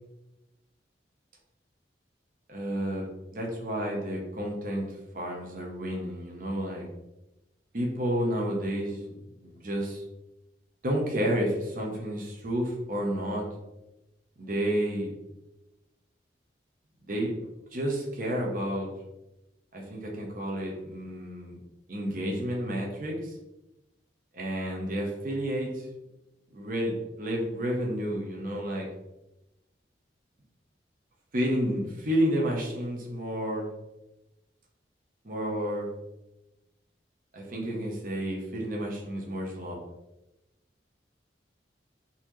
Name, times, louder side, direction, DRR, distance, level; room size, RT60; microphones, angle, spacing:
voice 1, 2.5-3.0 3.3-6.9 7.7-9.1 9.4-10.0 10.8-13.5 14.4-15.1 17.0-17.3 17.7-18.9 19.7-21.6 21.9-23.3 24.3-25.9 26.5-28.9 31.3-33.7 35.2-35.9 37.3-39.8, equal, 50° right, -1 dB, 0.7 m, -30 dB
4.0 x 2.7 x 3.0 m, 0.95 s
head